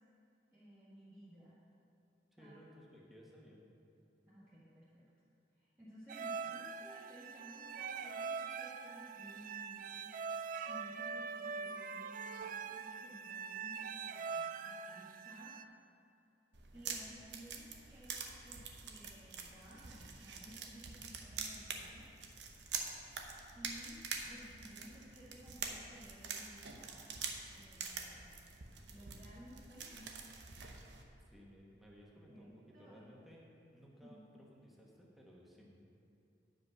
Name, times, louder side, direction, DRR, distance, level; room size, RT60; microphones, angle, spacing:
voice 1, 0.5-1.6 2.4-2.6 4.3-5.1 5.5-10.1 10.7-15.6 16.7-22.1 23.5-27.2 27.5-28.2 28.9-30.1 32.3-33.1 34.0-34.2, equal, 15° right, -11 dB, 1.5 m, -56 dB
voice 2, 2.3-3.6 31.3-33.5 33.7-35.7, equal, ahead, -3 dB, 1.2 m, -59 dB
sound 1, 6.1-15.6, right 5 dB, 50° right, 0.3 m, -43 dB
sound 2, 16.5-31.0, right 5 dB, 80° right, 0.8 m, -46 dB
9.3 x 5.3 x 6.2 m, 2.5 s
head